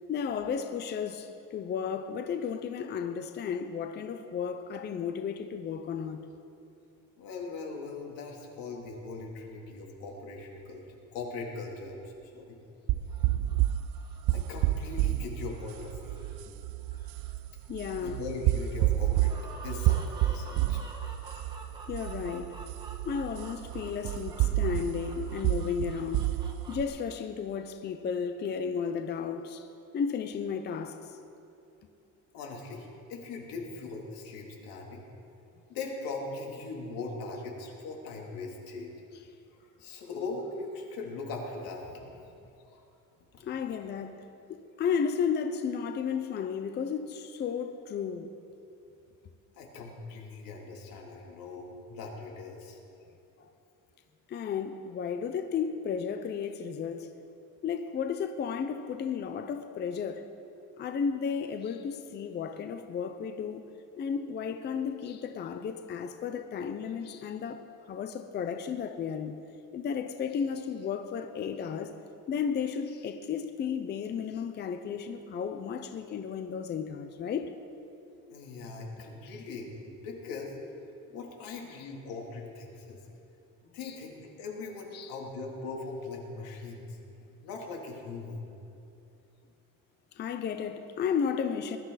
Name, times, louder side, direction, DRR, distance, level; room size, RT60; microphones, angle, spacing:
voice 1, 0.1-6.2 17.7-18.2 21.9-22.5 23.0-26.4 26.7-29.7 29.9-31.2 43.4-48.3 53.4-53.5 54.3-57.1 57.6-60.3 60.8-63.6 64.0-69.4 69.7-71.9 72.3-77.5 79.3-79.4 83.8-84.0 84.9-85.1 86.4-86.5 90.1-91.8, left 7 dB, 30° left, 0.6 m, -33 dB
voice 2, 7.2-12.6 14.3-16.3 16.9-17.2 17.9-20.8 32.3-35.1 35.7-38.9 39.6-42.2 42.7-42.8 43.7-43.8 49.5-52.8 78.2-80.5 81.1-83.0 83.6-87.0 87.4-88.4, left 3 dB, 85° left, 3.0 m, -40 dB
sound 1, 12.9-26.8, right 14 dB, 65° right, 0.5 m, -30 dB
sound 2, 13.1-26.8, right 2 dB, 15° right, 1.5 m, -50 dB
20.0 x 12.5 x 4.1 m
cardioid pair, 155°, 34 cm